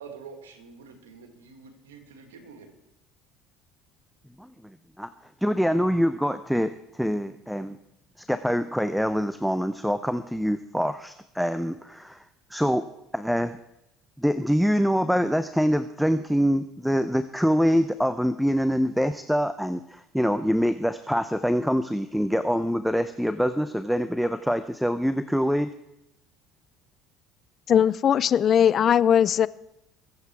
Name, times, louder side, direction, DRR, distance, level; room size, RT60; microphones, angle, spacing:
voice 1, 0.0-2.7, right 5 dB, 90° right, 5 dB, 2.3 m, -46 dB
voice 2, 4.4-5.1 5.4-6.7 7.0-7.8 8.2-12.2 12.5-12.8 13.1-13.6 14.2-25.7, equal, ahead, 12 dB, 0.7 m, -25 dB
voice 3, 27.7-29.5, left 9 dB, 45° left, 19 dB, 0.5 m, -19 dB
22.5 x 8.2 x 4.8 m, 0.84 s
hypercardioid pair, 75°, 0 cm